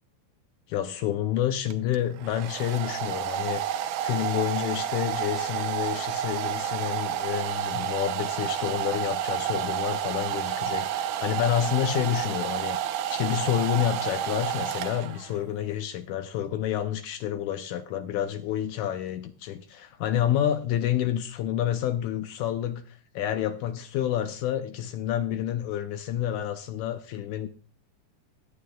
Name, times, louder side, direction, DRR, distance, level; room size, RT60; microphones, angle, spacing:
voice 1, 0.7-12.8 13.1-27.5, left 11 dB, 80° left, 9 dB, 1.8 m, -29 dB
Domestic sounds home sounds, 1.7-15.4, right 10 dB, 80° right, 2.1 m, -30 dB
16.5 x 10.0 x 2.2 m, 0.41 s
omnidirectional pair, 3.8 m